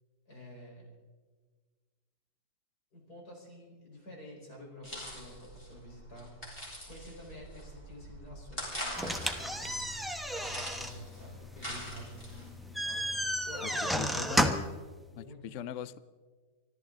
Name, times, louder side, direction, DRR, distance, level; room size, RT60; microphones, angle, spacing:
voice 1, 0.3-0.9 2.9-10.0 10.4-13.2 13.4-14.3 15.1-15.7, left 1 dB, 55° left, -2 dB, 5.4 m, -49 dB
sound 1, 4.8-12.5, equal, 30° left, 5.3 m, -43 dB
sound 2, 9.0-14.8, equal, ahead, 0.6 m, -33 dB
voice 2, 14.0-14.6 15.2-16.0, left 10 dB, 90° left, 17 dB, 0.6 m, -41 dB
25.0 x 14.0 x 3.9 m, 1.4 s
omnidirectional pair, 2.0 m